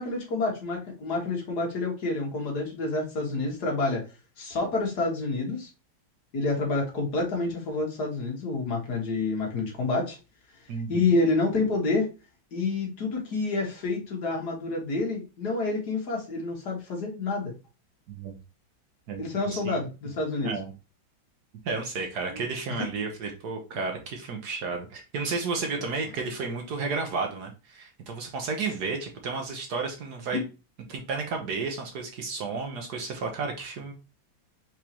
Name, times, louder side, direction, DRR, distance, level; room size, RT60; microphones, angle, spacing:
voice 1, 0.0-4.0 4.4-5.7 6.3-10.2 10.9-12.1 12.5-17.5 19.2-20.5 22.3-22.4 22.8-22.9 30.3-30.4, left 3 dB, 55° left, 0 dB, 1.9 m, -28 dB
voice 2, 10.7-11.0 18.1-18.3 19.1-19.2 19.5-19.8 20.4-20.7 21.6-30.4 30.9-33.9, right 4 dB, 60° right, 3 dB, 1.3 m, -32 dB
4.6 x 3.8 x 2.9 m, 0.30 s
omnidirectional pair, 2.1 m